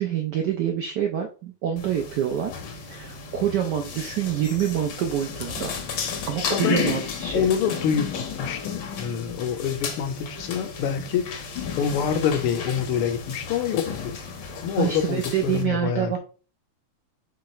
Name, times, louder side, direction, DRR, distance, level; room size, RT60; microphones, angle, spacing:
voice 1, 0.0-5.7 6.3-7.5 14.8-16.2, right 9 dB, 80° right, 3 dB, 0.9 m, -26 dB
sound 1, 1.8-15.6, left 6 dB, 65° left, 1.3 m, -33 dB
voice 2, 6.5-6.8 7.3-11.5 11.7-14.2 14.6-16.2, left 8 dB, 80° left, 7 dB, 1.6 m, -26 dB
4.8 x 2.3 x 4.2 m, 0.37 s
omnidirectional pair, 2.4 m